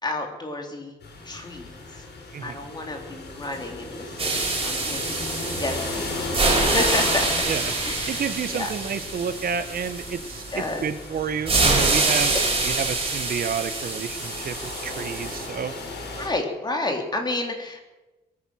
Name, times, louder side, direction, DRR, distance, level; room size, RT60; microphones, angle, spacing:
voice 1, 0.0-1.0 1.2-2.0 2.4-5.3 5.6-7.3 7.8-8.2 8.5-8.7 10.5-10.8 16.2-17.9, left 2 dB, 25° left, 2 dB, 3.4 m, -31 dB
sound 1, 1.0-16.3, left 2 dB, 80° left, 5.8 m, -35 dB
sound 2, 4.2-10.8 11.5-15.5, right 3 dB, 30° right, 4.9 m, -26 dB
voice 2, 8.1-12.3 12.6-15.7, right 7 dB, 60° right, 11 dB, 1.1 m, -30 dB
22.0 x 10.0 x 6.3 m, 1.1 s
wide cardioid pair, 125°, 17 cm